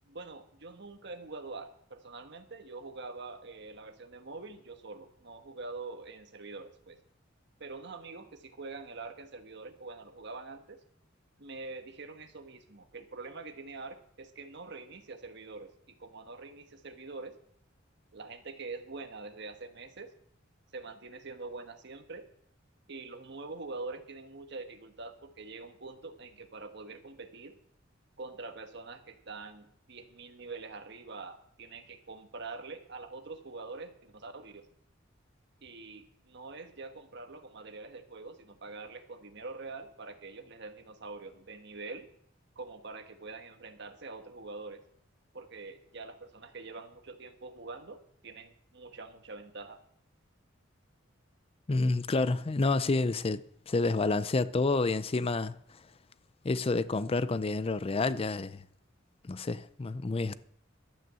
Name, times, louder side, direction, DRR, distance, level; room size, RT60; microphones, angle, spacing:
voice 1, 0.0-7.0 7.6-10.8 11.4-17.4 18.1-20.1 20.7-22.3 22.9-27.6 28.2-34.7 35.6-42.1 42.5-44.8 45.3-49.8, right 3 dB, 60° right, 1.4 m, -45 dB
voice 2, 51.7-55.5 56.4-58.6 59.2-60.4, left 3 dB, 30° left, 0.5 m, -29 dB
12.5 x 8.9 x 7.6 m
head